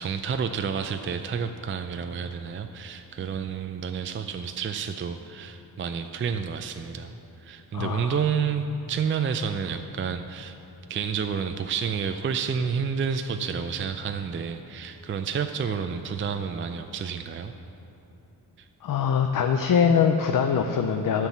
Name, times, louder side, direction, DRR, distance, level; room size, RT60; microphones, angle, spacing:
voice 1, 0.0-7.1 7.4-10.6 10.9-17.5 18.6-18.7, right 6 dB, 35° right, 7 dB, 0.4 m, -30 dB
voice 2, 7.7-8.2 18.8-21.3, left 7 dB, 55° left, 5 dB, 0.6 m, -23 dB
11.0 x 4.6 x 7.1 m, 3.0 s
wide cardioid pair, 95°, 39 cm